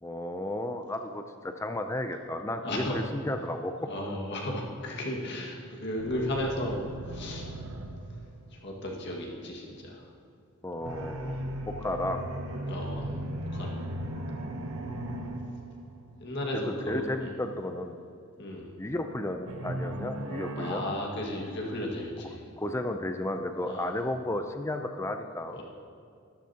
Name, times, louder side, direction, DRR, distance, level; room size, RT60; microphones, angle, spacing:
voice 1, 0.0-3.9 10.6-11.4 11.7-12.2 16.9-18.0 18.8-20.8 22.6-25.6, left 1 dB, 15° left, 6 dB, 0.5 m, -33 dB
voice 2, 2.6-3.0 3.9-7.5 8.6-10.0 12.7-13.2 13.5-13.8 16.2-17.3 18.4-18.7 20.5-22.4 23.7-24.0 25.5-25.6, left 1 dB, 55° left, -1 dB, 1.8 m, -34 dB
sound 1, 6.0-9.1 10.8-16.5 19.5-21.9, right 1 dB, 85° right, 1.0 m, -37 dB
14.0 x 12.5 x 2.9 m, 2.4 s
head